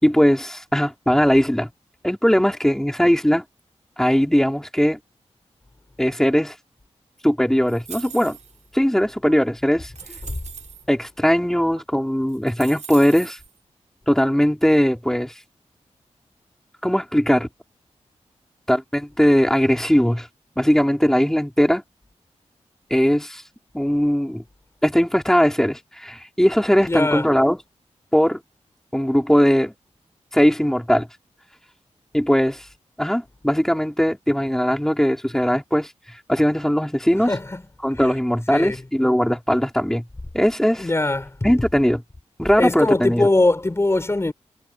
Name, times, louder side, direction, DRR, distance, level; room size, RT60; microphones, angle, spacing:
voice 1, 0.0-1.7 2.0-3.4 4.0-5.0 6.0-6.5 7.2-8.4 8.7-9.9 10.9-13.4 14.1-15.3 16.8-17.5 18.7-20.3 20.6-21.8 22.9-23.4 23.7-24.4 24.8-27.6 28.1-28.4 28.9-29.7 30.3-31.1 32.1-32.6 33.0-35.9 36.3-37.3 37.8-40.0 40.3-40.9 41.4-42.0 42.4-43.3, equal, 5° left, 4.9 m, -19 dB
sound 1, 7.7-8.7 9.3-9.4 9.9-10.8 11.8-11.9 12.3-13.5, right 7 dB, 80° right, 6.5 m, -40 dB
voice 2, 26.8-27.3 37.2-37.6 38.0-38.1 38.5-38.8 40.8-41.4 42.6-44.3, left 2 dB, 20° left, 5.5 m, -21 dB
wide cardioid pair, 100°, 12 cm